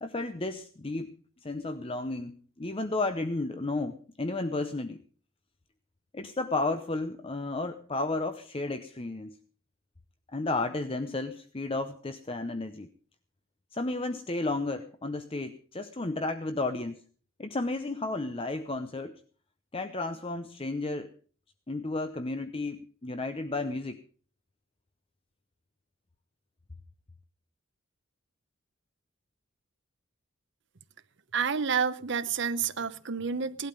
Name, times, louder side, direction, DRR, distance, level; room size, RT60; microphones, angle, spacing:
voice 1, 0.0-1.1 1.4-5.0 6.1-9.4 10.3-12.9 13.7-17.0 17.4-19.1 19.7-21.1 21.7-24.0, left 2 dB, 25° left, 0.7 m, -33 dB
voice 2, 31.3-33.7, right 6 dB, 60° right, 0.9 m, -29 dB
18.0 x 12.0 x 5.3 m
head